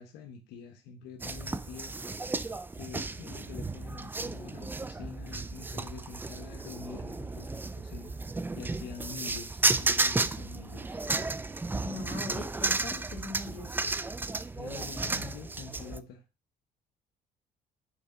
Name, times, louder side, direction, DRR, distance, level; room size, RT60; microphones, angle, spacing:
voice 1, 0.0-1.9 2.7-8.1 8.5-11.0 14.5-16.2, left 6 dB, 85° left, 4 dB, 1.0 m, -46 dB
sound 1, 1.2-16.0, right 3 dB, 10° right, 0.4 m, -33 dB
voice 2, 11.8-13.7, left 3 dB, 40° left, 1 dB, 2.5 m, -41 dB
6.3 x 3.8 x 5.8 m, 0.29 s
cardioid pair, 110°, 17 cm